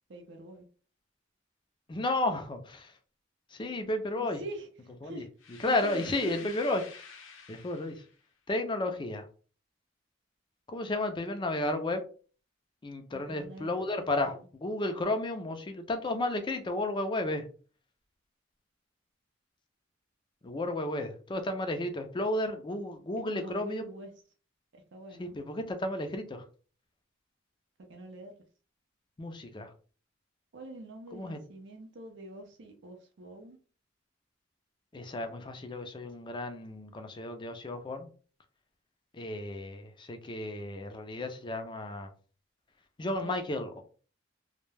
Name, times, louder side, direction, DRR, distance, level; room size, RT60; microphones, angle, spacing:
voice 1, 0.1-0.6 4.1-4.7 5.0-5.3 5.6-6.5 13.1-14.4 23.3-24.1 24.7-25.3 27.9-28.3 30.5-33.6 43.2-43.4, right 2 dB, 65° right, 0.5 m, -44 dB
voice 2, 1.9-2.9 3.5-4.4 5.0-5.2 5.6-6.8 7.5-8.0 8.5-9.3 10.7-12.0 12.8-17.5 20.4-23.8 25.2-26.4 29.2-29.7 31.1-31.4 34.9-38.1 39.1-42.1 43.0-43.8, left 2 dB, 25° left, 0.4 m, -33 dB
sound 1, 5.4-8.2, left 6 dB, 85° left, 0.6 m, -49 dB
2.2 x 2.1 x 3.1 m
head